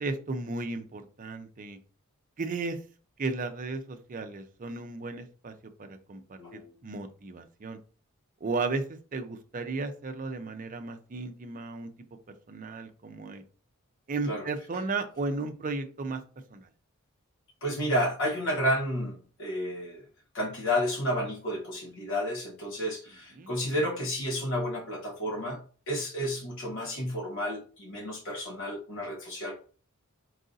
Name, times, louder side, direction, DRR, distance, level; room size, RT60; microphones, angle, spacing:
voice 1, 0.0-1.8 2.4-2.8 3.2-5.5 5.8-7.8 8.4-11.9 12.5-13.4 14.1-16.2 16.5-16.7 23.4-23.5, right 3 dB, 35° right, 7 dB, 0.5 m, -34 dB
voice 2, 6.4-6.7 14.2-14.4 17.6-20.0 20.3-25.6 25.9-29.6, equal, 60° left, 0 dB, 0.8 m, -31 dB
4.7 x 2.6 x 3.9 m, 0.40 s
head